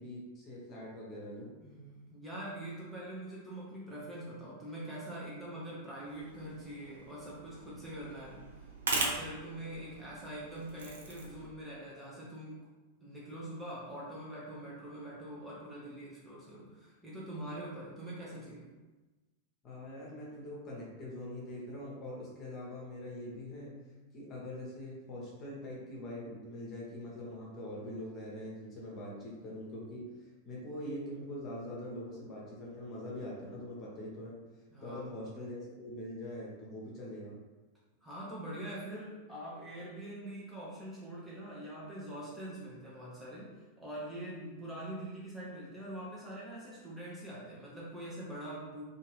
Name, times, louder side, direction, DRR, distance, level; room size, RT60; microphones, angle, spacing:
voice 1, 0.0-1.5 19.6-23.7 24.1-30.0 30.4-34.4 34.8-37.3, left 1 dB, 30° left, -5 dB, 1.0 m, -43 dB
voice 2, 1.6-8.4 8.9-12.6 13.0-18.7 34.7-35.3 38.0-48.8, right 1 dB, 5° right, -8 dB, 0.8 m, -44 dB
sound 1, 6.0-11.5, right 3 dB, 65° right, 0.5 m, -40 dB
2.8 x 2.4 x 3.1 m, 1.2 s
figure-of-eight pair, 90°, 0 cm